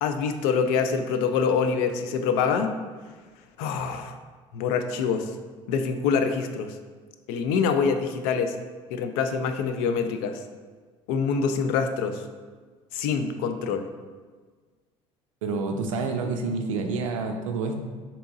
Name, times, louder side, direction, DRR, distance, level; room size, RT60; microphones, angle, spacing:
voice 1, 0.0-2.7 3.6-4.2 4.5-5.3 5.7-6.7 7.3-8.5 8.9-10.4 11.1-12.2 12.9-13.9, left 6 dB, 60° left, 7 dB, 0.4 m, -25 dB
voice 2, 15.4-17.8, right 4 dB, 75° right, 4 dB, 0.5 m, -28 dB
3.4 x 2.8 x 3.9 m, 1.5 s
figure-of-eight pair, 60°, 17 cm